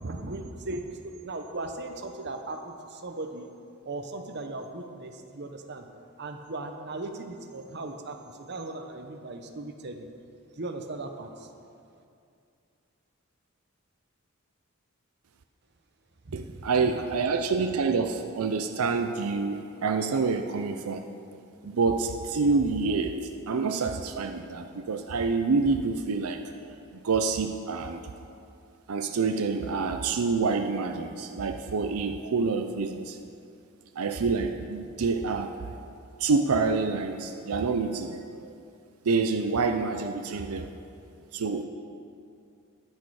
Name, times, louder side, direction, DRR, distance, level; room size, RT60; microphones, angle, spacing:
voice 1, 0.0-3.5 3.8-5.9 6.2-10.1 10.5-11.5 16.2-17.0, right 2 dB, 50° right, 5 dB, 0.9 m, -38 dB
voice 2, 16.3-21.0 21.6-23.2 23.5-28.0 28.9-33.2 34.0-35.7 36.2-38.5 39.0-40.7 41.3-41.7, right 4 dB, 85° right, 6 dB, 0.5 m, -27 dB
18.5 x 6.5 x 4.8 m, 2.5 s
head